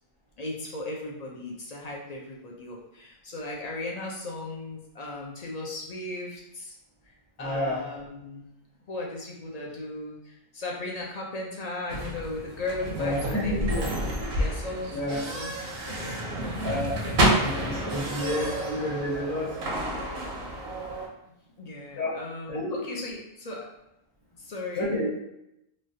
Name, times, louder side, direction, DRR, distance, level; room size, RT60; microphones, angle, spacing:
voice 1, 0.4-6.7 7.0-8.5 8.9-16.7 17.0-18.2 18.5-18.6 21.3-23.7 24.4-25.0, left 2 dB, 50° left, -2 dB, 0.5 m, -37 dB
voice 2, 7.4-7.8 13.0-13.8 14.9-15.2 16.6-17.1 17.4-19.5 22.0-22.2 22.5-22.7 24.7-25.2, left 1 dB, 20° left, -8 dB, 0.8 m, -29 dB
sound 1, 11.9-21.1, right 1 dB, 70° right, 0.9 m, -30 dB
3.1 x 2.3 x 2.6 m, 0.85 s
omnidirectional pair, 1.1 m